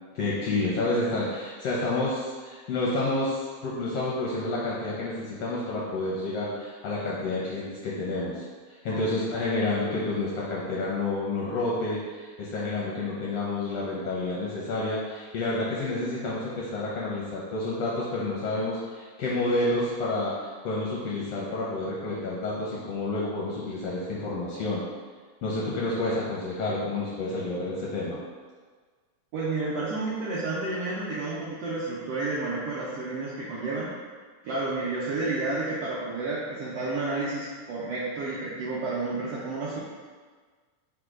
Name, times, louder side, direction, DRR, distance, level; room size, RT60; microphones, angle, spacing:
voice 1, 0.1-20.3 20.6-24.8 25.4-28.2, left 2 dB, 75° left, -6 dB, 1.4 m, -29 dB
voice 2, 29.3-33.9 34.4-39.8, right 3 dB, 80° right, -7 dB, 1.4 m, -31 dB
4.9 x 2.2 x 4.6 m, 1.5 s
omnidirectional pair, 3.4 m